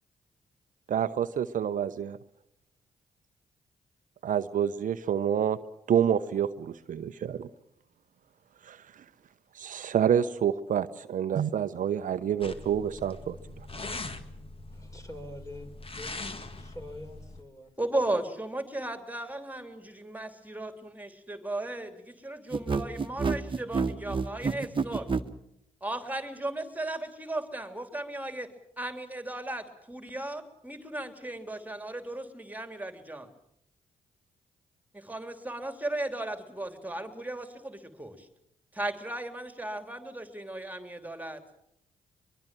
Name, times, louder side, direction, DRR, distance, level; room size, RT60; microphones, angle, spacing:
voice 1, 0.9-2.2 4.2-5.6 5.9-7.5 8.6-9.0 9.5-13.4, right 9 dB, 55° right, 12 dB, 0.8 m, -28 dB
sound 1, 12.4-17.4, left 3 dB, 35° left, 2.2 m, -41 dB
voice 2, 14.7-15.7 16.0-17.7, left 1 dB, 20° left, 5 dB, 5.4 m, -45 dB
voice 3, 17.8-25.1 25.8-28.5 28.8-33.3 34.9-38.3 38.7-41.4, right 1 dB, 10° right, 8 dB, 3.1 m, -36 dB
sound 2, 22.5-25.3, right 4 dB, 35° right, 1.4 m, -28 dB
23.0 x 22.5 x 7.5 m, 0.79 s
hypercardioid pair, 40°, 16 cm